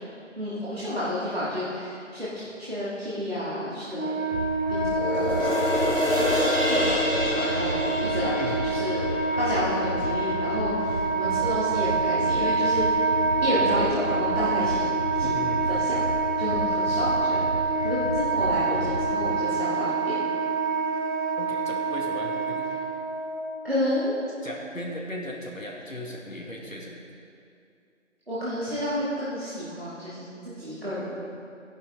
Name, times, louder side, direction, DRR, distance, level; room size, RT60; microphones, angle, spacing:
voice 1, 0.4-2.3 2.6-4.1 4.7-6.3 6.6-9.0 9.4-13.0 13.4-14.8 15.2-15.4 15.7-16.0 16.4-20.2 23.6-24.2 28.3-30.3 30.6-31.1, left 1 dB, 50° right, -10 dB, 2.5 m, -30 dB
Wind instrument woodwind instrument, 3.9-23.4, right 3 dB, 60° left, 2.4 m, -26 dB
sound 1, 4.3-19.3, equal, 40° left, 2.4 m, -34 dB
sound 2, 4.9-11.5 11.9-12.0, equal, 90° right, 2.6 m, -29 dB
voice 2, 15.2-15.6 21.4-22.7 24.4-27.0, left 1 dB, 90° left, -2 dB, 2.3 m, -37 dB
13.0 x 11.0 x 3.9 m, 2.5 s
figure-of-eight pair, 180°, 38 cm